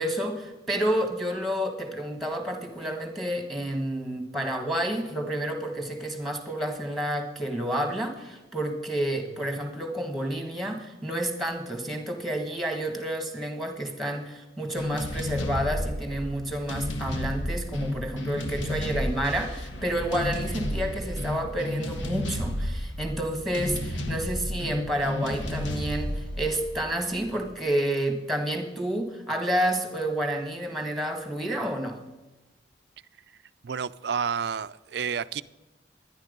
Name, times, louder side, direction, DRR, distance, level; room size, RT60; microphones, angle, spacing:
voice 1, 0.0-32.0, right 1 dB, ahead, 1.6 m, -30 dB
sound 1, 14.8-27.5, left 1 dB, 85° left, 1.4 m, -32 dB
voice 2, 33.6-35.4, right 7 dB, 60° right, 0.4 m, -30 dB
12.0 x 10.5 x 5.2 m
head